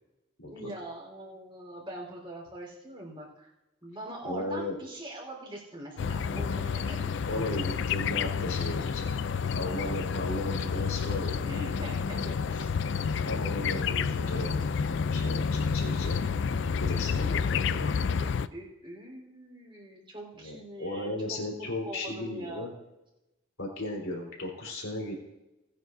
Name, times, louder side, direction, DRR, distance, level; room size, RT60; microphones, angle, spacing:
voice 1, 0.4-3.5 3.8-7.1 11.4-12.7 18.2-22.7, right 1 dB, 25° right, -2 dB, 3.9 m, -43 dB
voice 2, 4.2-4.8 7.3-9.1 9.5-11.4 12.9-13.0 13.2-14.5 15.1-16.2 16.8-18.1 20.4-22.7 23.6-25.1, left 1 dB, 85° left, -2 dB, 3.8 m, -36 dB
sound 1, 6.0-18.5, left 6 dB, 60° left, 0.4 m, -30 dB
20.0 x 9.3 x 2.7 m, 0.97 s
head